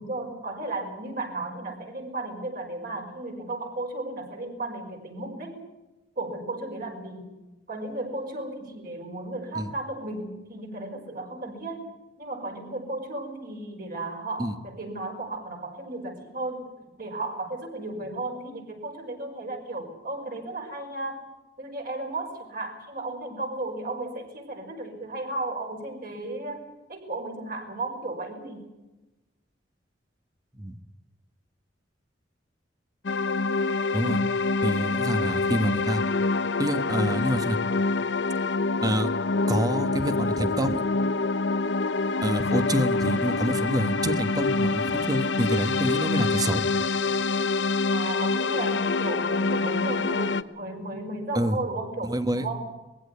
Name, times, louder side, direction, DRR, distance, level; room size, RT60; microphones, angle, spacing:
voice 1, 0.0-5.6 6.2-7.3 7.7-11.9 12.2-16.7 17.0-21.2 21.6-28.7 47.9-52.7, right 2 dB, 50° right, 1 dB, 5.3 m, -34 dB
sound 1, 33.0-50.4, left 3 dB, 75° left, 0.8 m, -26 dB
voice 2, 34.6-36.0 36.6-37.6 38.8-39.1 39.5-40.8 42.2-46.6 51.3-51.6 52.0-52.5, equal, 20° right, 10 dB, 1.4 m, -27 dB
21.5 x 15.5 x 9.6 m, 1.1 s
head